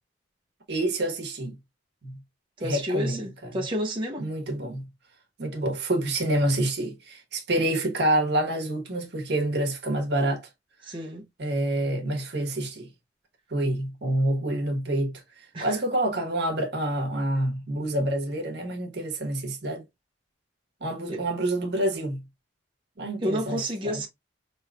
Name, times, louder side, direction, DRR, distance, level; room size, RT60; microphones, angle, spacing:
voice 1, 0.7-1.6 2.0-2.2 2.6-3.6 4.2-4.9 5.4-10.5 11.4-12.9 13.5-15.2 15.6-19.8 20.8-22.2 23.0-24.0, right 1 dB, 65° right, 1.1 m, -27 dB
voice 2, 2.6-4.2 10.8-11.3 15.5-15.8 21.1-21.2 23.2-24.1, equal, 30° right, 0.8 m, -30 dB
4.6 x 3.0 x 2.4 m
head